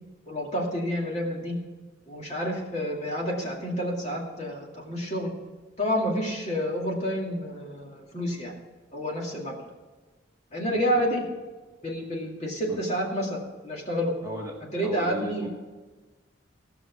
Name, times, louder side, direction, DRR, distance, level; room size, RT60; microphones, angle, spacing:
voice 1, 0.3-1.6 2.1-5.3 5.8-8.5 8.9-9.6 10.5-11.2 11.8-14.1 14.7-15.5, equal, 35° left, -1 dB, 2.3 m, -29 dB
voice 2, 10.7-11.1 12.7-12.8 14.2-15.5, left 1 dB, 20° right, 0 dB, 1.4 m, -37 dB
16.5 x 6.1 x 6.0 m, 1.3 s
head